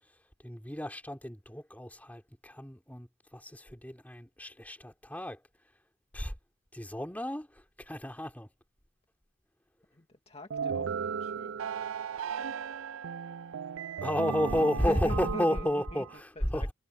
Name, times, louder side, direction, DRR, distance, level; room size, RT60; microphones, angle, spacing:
voice 1, 0.4-5.4 6.1-6.3 6.7-8.5 14.0-16.7, equal, 10° left, 3.4 m, -32 dB
voice 2, 9.9-11.6 14.6-16.0 16.4-16.7, left 1 dB, 30° left, 2.0 m, -43 dB
sound 1, 10.5-16.2, right 6 dB, 85° right, 0.5 m, -36 dB
head